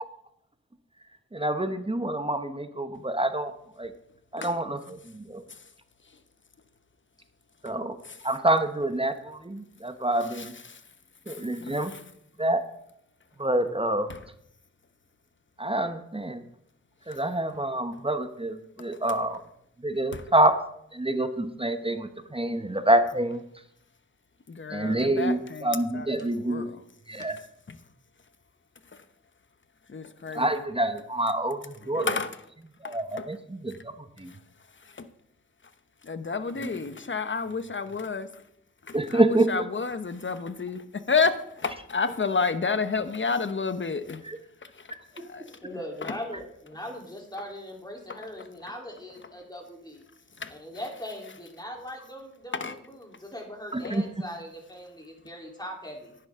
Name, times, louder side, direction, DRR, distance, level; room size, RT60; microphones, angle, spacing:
voice 1, 1.3-3.5 3.8-3.9 4.3-5.4 7.6-8.0 8.2-10.5 11.3-11.9 12.4-12.6 13.4-14.1 15.6-16.4 17.1-19.4 19.8-20.5 20.9-23.4 24.7-26.6 27.1-27.4 30.3-32.1 32.8-34.3 38.9-39.6 44.3-44.4 53.7-54.0, right 1 dB, 20° right, 1.0 m, -27 dB
voice 2, 10.2-10.9 11.3-12.0 14.1-14.3 17.1-17.2 18.8-19.2 20.1-20.3 24.5-26.8 27.2-27.4 27.7-27.9 28.8-29.1 29.9-30.7 31.8-32.5 32.8-33.4 34.2-35.1 36.0-38.5 38.8-44.3 44.6-45.6 46.0-46.2 48.1-48.5 50.3-50.6 52.5-52.8 53.8-54.0, left 4 dB, 40° left, 1.0 m, -32 dB
voice 3, 45.6-50.0 50.5-52.5 52.9-56.2, equal, 15° left, 3.6 m, -40 dB
10.5 x 10.5 x 3.7 m
cardioid pair, 45°, 31 cm